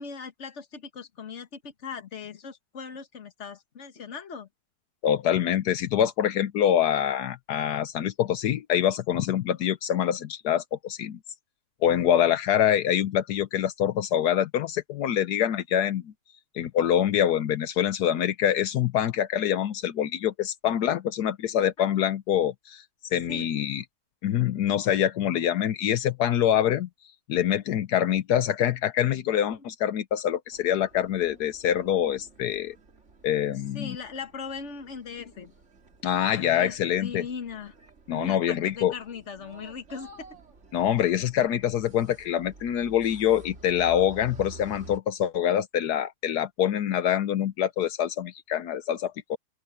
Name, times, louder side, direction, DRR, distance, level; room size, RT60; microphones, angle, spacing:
voice 1, 0.0-4.5 12.0-12.1 21.8-21.9 23.3-23.5 33.7-35.5 36.5-37.8 38.1-40.4, left 5 dB, 50° left, 1.7 m, -39 dB
voice 2, 5.0-11.2 11.8-16.1 16.5-22.8 23.1-23.8 24.2-26.9 27.3-32.7 33.2-34.0 36.0-37.2 38.1-38.9 40.7-49.4, left 10 dB, 80° left, 1.3 m, -25 dB
sound 1, 30.5-45.0, right 3 dB, 45° right, 2.6 m, -50 dB
open air
omnidirectional pair, 1.7 m